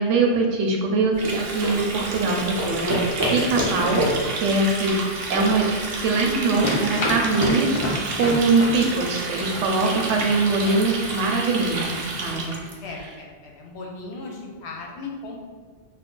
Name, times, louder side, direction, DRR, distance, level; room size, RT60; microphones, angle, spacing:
voice 1, 0.0-3.0 3.3-4.0 4.3-11.9 12.2-12.6, right 3 dB, 90° right, 1 dB, 0.9 m, -22 dB
Water tap faucet, 1.1-12.7, right 3 dB, 65° right, 0.7 m, -31 dB
sound 1, 1.2-6.4, equal, 30° right, 0.4 m, -28 dB
sound 2, 6.4-12.3, left 1 dB, 50° left, 0.3 m, -31 dB
voice 2, 12.8-15.4, left 3 dB, 70° left, 0 dB, 0.8 m, -37 dB
2.5 x 2.2 x 3.6 m, 1.4 s
omnidirectional pair, 1.2 m